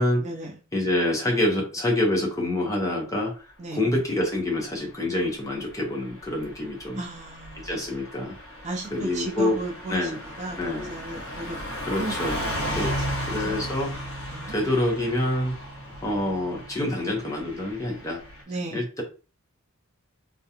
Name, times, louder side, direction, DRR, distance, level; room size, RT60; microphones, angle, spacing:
voice 1, 0.2-0.5 3.6-3.8 6.9-7.7 8.6-10.1 10.4-12.1 12.7-13.9 14.3-14.6 18.5-18.8, right 2 dB, 30° right, 0.4 m, -35 dB
voice 2, 0.7-7.0 7.6-8.4 8.9-9.6 9.9-10.2 10.6-10.9 11.9-12.4 12.7-13.9 14.5-15.6 16.0-18.2 18.7-19.0, left 1 dB, 15° left, 0.6 m, -26 dB
Car passing by / Truck, 5.4-18.4, equal, 65° left, 1.1 m, -35 dB
2.4 x 2.2 x 2.8 m
head